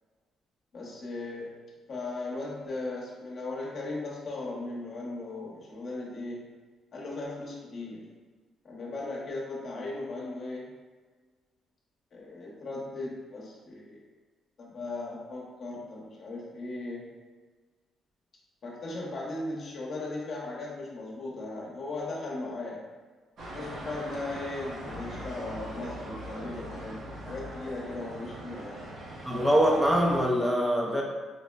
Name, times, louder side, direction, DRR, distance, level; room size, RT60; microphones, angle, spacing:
voice 1, 0.7-1.6 1.9-6.4 6.9-8.1 8.6-10.7 12.1-14.0 14.6-17.1 18.6-22.9 23.5-28.8, left 2 dB, 55° left, -4 dB, 0.8 m, -37 dB
sound 1, 23.4-30.3, right 1 dB, 65° right, 0.7 m, -41 dB
voice 2, 29.3-31.0, equal, 10° right, -1 dB, 0.4 m, -23 dB
4.1 x 2.1 x 2.3 m, 1.4 s
cardioid pair, 90°, 0 cm